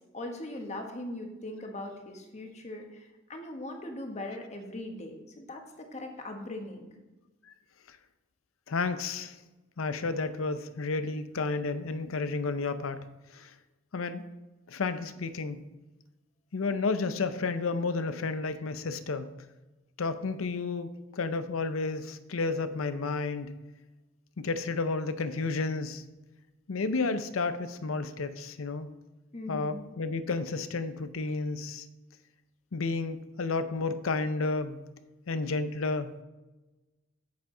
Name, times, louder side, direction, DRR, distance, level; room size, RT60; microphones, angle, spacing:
voice 1, 0.1-6.9 29.3-29.8, left 1 dB, 35° left, 4 dB, 1.2 m, -40 dB
voice 2, 8.7-9.4 9.8-13.0 13.3-13.5 13.9-14.2 14.7-15.6 16.5-19.3 20.0-23.5 24.4-26.0 26.7-28.9 29.5-31.9 32.7-34.8 35.3-36.2, left 3 dB, 85° left, 11 dB, 0.6 m, -31 dB
8.5 x 8.2 x 3.8 m, 1.1 s
head